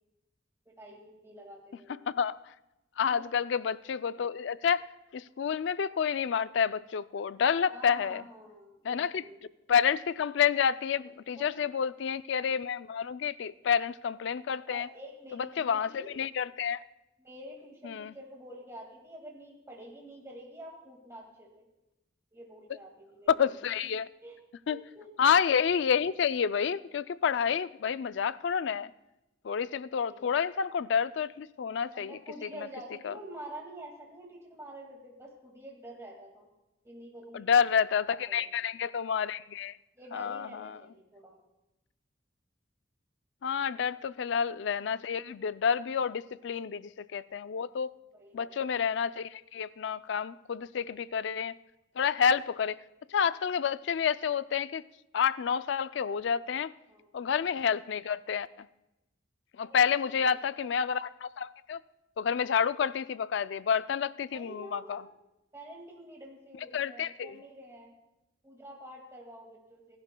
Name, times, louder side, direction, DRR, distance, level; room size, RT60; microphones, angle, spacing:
voice 1, 0.7-2.0 3.0-3.3 7.7-9.4 11.4-11.7 14.7-16.1 17.2-21.6 22.3-23.7 24.2-24.4 24.7-25.1 30.1-30.4 31.9-36.5 36.8-37.7 38.0-38.5 40.0-41.4 43.7-43.8 48.1-48.6 56.9-57.1 59.6-60.7 64.3-65.0 65.5-67.9 68.4-70.0, right 1 dB, 15° right, 2.0 m, -48 dB
voice 2, 1.9-2.5 3.0-4.8 5.1-8.2 8.8-9.2 9.7-14.9 15.3-16.8 17.8-18.1 23.3-24.1 24.7-24.8 25.2-28.9 29.4-32.7 33.0-33.1 37.3-39.8 40.1-40.8 43.4-47.9 48.3-51.6 52.0-52.8 53.1-54.8 55.1-56.7 57.1-58.7 59.6-61.8 62.2-65.0 66.7-67.4, left 7 dB, 65° left, 0.4 m, -29 dB
29.0 x 11.5 x 2.2 m
head